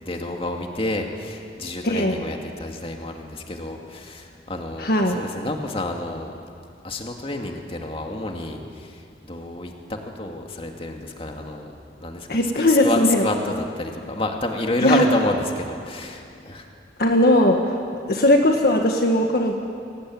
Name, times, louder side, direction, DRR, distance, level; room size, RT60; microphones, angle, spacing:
voice 1, 0.0-6.3 6.8-11.7 12.0-16.7, left 2 dB, 35° left, 2 dB, 2.4 m, -29 dB
voice 2, 1.8-2.2 4.8-5.2 12.3-13.3 14.8-15.0 17.0-17.8 18.1-19.5, left 1 dB, 60° left, 3 dB, 1.6 m, -19 dB
24.0 x 19.0 x 9.4 m, 2.5 s
head